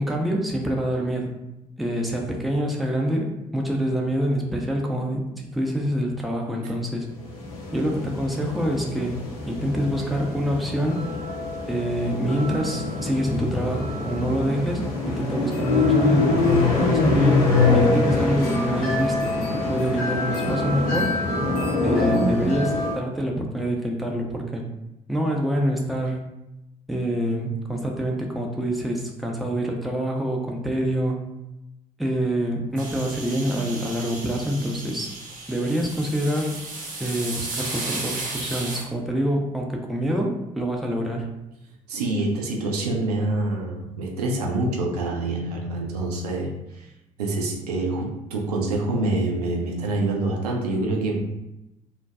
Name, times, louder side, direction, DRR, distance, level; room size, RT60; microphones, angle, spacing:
voice 1, 0.0-1.3 1.8-5.3 5.5-7.1 7.7-9.2 9.5-11.0 11.7-17.4 17.7-19.3 19.7-21.1 21.8-24.6 25.1-26.2 26.9-31.2 32.0-35.2 35.5-36.6 37.0-41.3, equal, ahead, 0 dB, 0.4 m, -26 dB
sound 1, 7.2-22.9, left 3 dB, 75° left, 0.6 m, -24 dB
sound 2, 32.8-38.8, right 2 dB, 40° right, 0.7 m, -34 dB
voice 2, 41.9-46.9 47.2-51.2, right 2 dB, 80° right, 0 dB, 0.4 m, -26 dB
2.5 x 2.2 x 2.2 m, 0.93 s
figure-of-eight pair, 45°, 20 cm